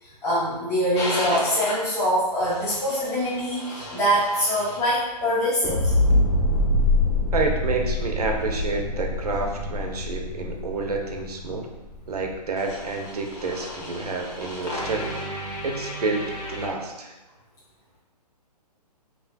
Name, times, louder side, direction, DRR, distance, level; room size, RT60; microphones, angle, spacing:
voice 1, 0.0-5.9 11.5-11.6, equal, 15° left, -11 dB, 1.0 m, -24 dB
sound 1, 1.0-1.7 2.4-4.8 5.6-16.7, left 1 dB, 40° left, 1.3 m, -27 dB
voice 2, 7.3-11.7 12.1-15.2 15.6-17.1, right 3 dB, 65° right, 2 dB, 0.8 m, -29 dB
5.5 x 3.0 x 2.3 m, 1.1 s
figure-of-eight pair, 135°, 21 cm